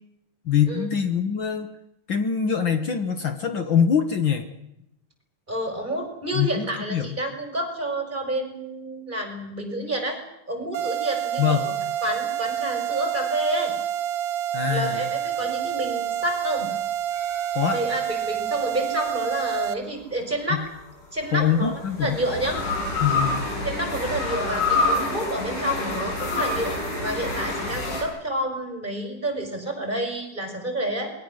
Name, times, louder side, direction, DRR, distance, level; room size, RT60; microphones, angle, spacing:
voice 1, 0.4-1.7 2.1-4.5 6.3-7.1 11.4-11.7 14.5-15.0 17.5-17.8 21.3-22.2 23.0-23.4, left 7 dB, 55° left, 7 dB, 1.4 m, -23 dB
voice 2, 5.5-10.2 10.5-11.7 12.0-13.7 14.7-16.7 17.7-20.6 21.1-21.7 22.0-22.6 23.6-31.1, right 1 dB, 15° right, 3 dB, 5.1 m, -29 dB
sound 1, 10.7-19.7, right 10 dB, 65° right, 2.1 m, -28 dB
sound 2, 17.1-18.6 20.5-28.0, left 2 dB, 80° left, 6.8 m, -28 dB
28.0 x 21.5 x 6.5 m, 0.83 s
omnidirectional pair, 3.6 m